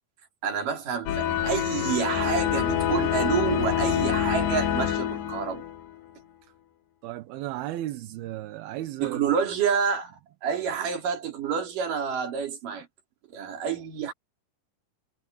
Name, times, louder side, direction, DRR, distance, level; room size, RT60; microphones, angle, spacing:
voice 1, 0.4-5.6 9.0-12.9 13.3-14.1, right 7 dB, 50° right, 4.4 m, -28 dB
sound 1, 1.1-5.9, left 10 dB, 70° left, 3.8 m, -26 dB
voice 2, 7.0-9.2, right 14 dB, 70° right, 2.7 m, -35 dB
omnidirectional pair, 4.9 m